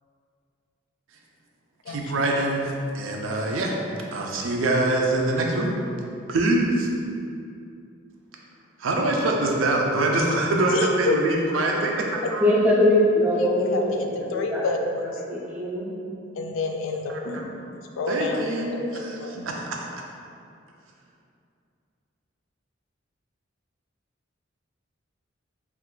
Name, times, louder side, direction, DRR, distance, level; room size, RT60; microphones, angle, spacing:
voice 1, 1.9-3.8 4.1-5.9 6.3-6.9 8.8-12.5 17.1-17.4 18.1-19.7, right 2 dB, 85° right, 0 dB, 0.4 m, -24 dB
voice 2, 10.7-11.2 12.2-12.3 13.7-15.0 16.3-17.5 18.0-19.5, left 3 dB, 85° left, 3 dB, 0.3 m, -29 dB
voice 3, 12.4-14.6 15.2-16.2, left 1 dB, 10° right, -5 dB, 0.4 m, -22 dB
2.5 x 2.4 x 3.6 m, 2.5 s
head